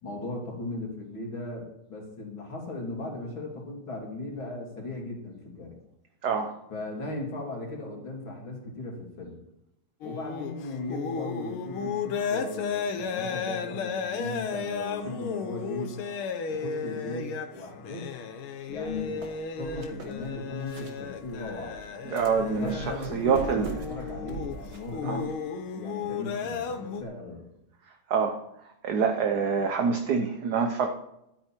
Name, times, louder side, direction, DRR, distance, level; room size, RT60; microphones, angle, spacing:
voice 1, 0.0-5.8 6.7-9.4 10.0-15.9 16.5-18.1 18.7-19.2 19.6-21.8 22.4-25.3 25.6-27.5, left 2 dB, 70° left, -1 dB, 3.8 m, -37 dB
sound 1, 10.0-27.0, left 5 dB, 85° left, 1.9 m, -34 dB
sound 2, 18.7-25.3, right 3 dB, 35° right, 1.6 m, -43 dB
voice 2, 22.1-23.7 25.0-25.2 28.1-28.4 28.8-30.9, right 6 dB, 55° right, 5 dB, 1.4 m, -26 dB
12.5 x 9.4 x 4.5 m, 0.81 s
omnidirectional pair, 2.3 m